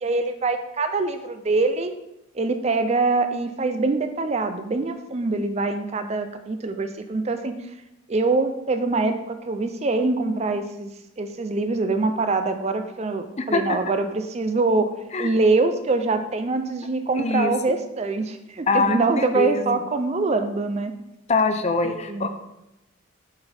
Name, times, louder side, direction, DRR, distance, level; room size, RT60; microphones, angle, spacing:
voice 1, 0.0-1.9 2.4-7.6 8.1-10.9 11.2-14.9 15.2-20.9 21.8-22.3, right 3 dB, 30° right, 8 dB, 0.4 m, -24 dB
voice 2, 13.4-13.8 15.1-15.3 17.2-17.5 18.7-19.8 21.3-22.3, left 4 dB, 30° left, 8 dB, 0.4 m, -23 dB
7.7 x 4.0 x 4.2 m, 0.88 s
head